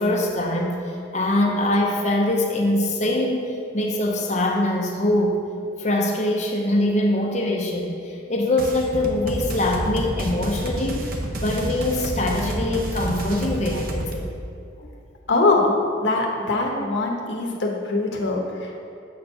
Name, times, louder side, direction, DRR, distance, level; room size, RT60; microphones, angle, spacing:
voice 1, 0.0-5.4 5.8-14.3 14.8-14.9, left 1 dB, 40° left, 1 dB, 0.7 m, -23 dB
sound 1, 8.6-14.1, right 1 dB, 50° right, 0.7 m, -29 dB
voice 2, 15.3-18.8, left 2 dB, 80° left, 0 dB, 0.9 m, -22 dB
7.5 x 4.5 x 5.4 m, 2.4 s
head